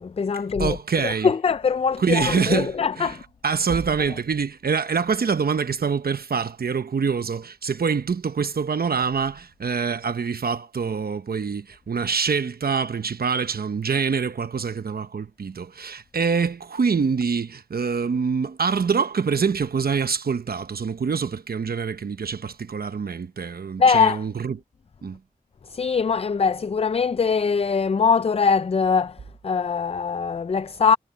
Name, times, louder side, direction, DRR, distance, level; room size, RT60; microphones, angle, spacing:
voice 1, 0.0-3.2 23.8-24.2 25.6-31.0, left 5 dB, 40° left, 0.4 m, -22 dB
voice 2, 0.6-1.3 2.0-3.2 3.4-24.6 25.0-25.2, right 5 dB, 75° right, 0.9 m, -25 dB
wide cardioid pair, 65°, 16 cm